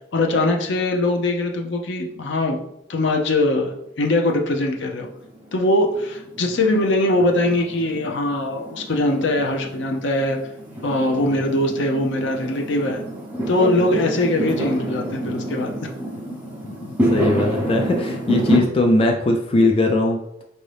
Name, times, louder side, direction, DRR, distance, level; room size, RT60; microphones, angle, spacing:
voice 1, 0.1-2.6 2.9-5.1 5.5-10.4 10.8-13.0 13.5-15.9, left 1 dB, 65° left, 2 dB, 0.6 m, -21 dB
Fireworks, 4.0-18.6, right 1 dB, 10° right, 0.8 m, -28 dB
voice 2, 16.6-20.2, left 2 dB, 30° left, 2 dB, 0.3 m, -19 dB
4.5 x 2.7 x 3.3 m, 0.80 s
head